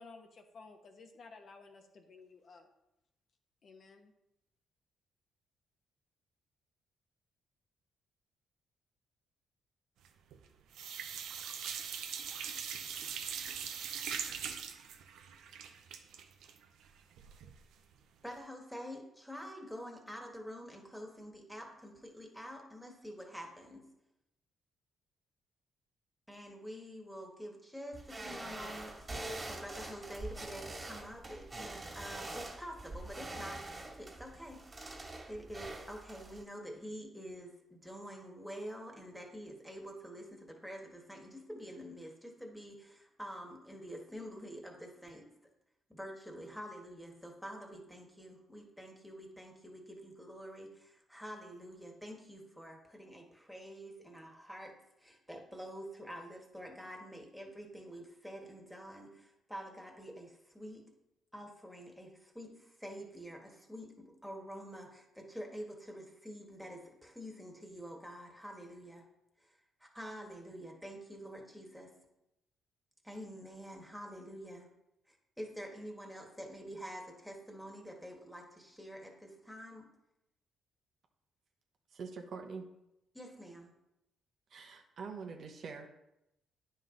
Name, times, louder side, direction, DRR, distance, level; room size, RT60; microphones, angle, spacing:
voice 1, 0.0-2.7 3.6-4.1, left 4 dB, 50° left, 4 dB, 1.0 m, -54 dB
sound 1, 10.1-10.5 10.7-17.6 17.9-18.0 18.3-18.4, right 8 dB, 85° right, 0.7 m, -41 dB
voice 2, 18.2-23.9 26.3-34.6 35.3-45.3 45.9-60.9 61.3-69.0 69.4-69.5 69.8-71.9 73.0-74.7 75.1-79.9 83.1-83.7, equal, ahead, 1 dB, 1.7 m, -47 dB
sound 2, 27.9-36.4, right 2 dB, 25° right, 2.3 m, -45 dB
voice 3, 81.9-82.7 84.5-85.9, right 5 dB, 60° right, 4 dB, 1.0 m, -44 dB
9.4 x 5.5 x 3.9 m, 0.87 s
cardioid pair, 90°, 0 cm